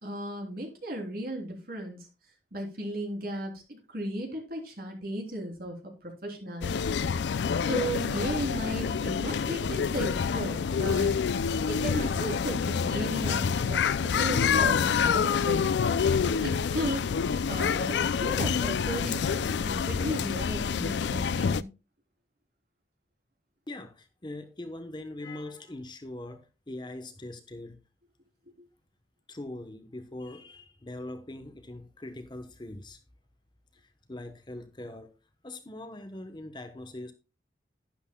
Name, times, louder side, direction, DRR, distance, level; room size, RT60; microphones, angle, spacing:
voice 1, 0.0-2.1 2.5-3.5 3.9-7.4 7.6-11.1 11.6-15.7 16.2-17.1 17.4-21.7 28.6-28.7, right 1 dB, 55° right, 3.3 m, -35 dB
sound 1, 6.6-21.6, left 6 dB, 75° left, 0.4 m, -27 dB
voice 2, 23.7-27.8 29.3-33.0 33.7-35.1 35.4-37.1, left 1 dB, 25° left, 0.9 m, -42 dB
11.5 x 10.5 x 2.2 m
head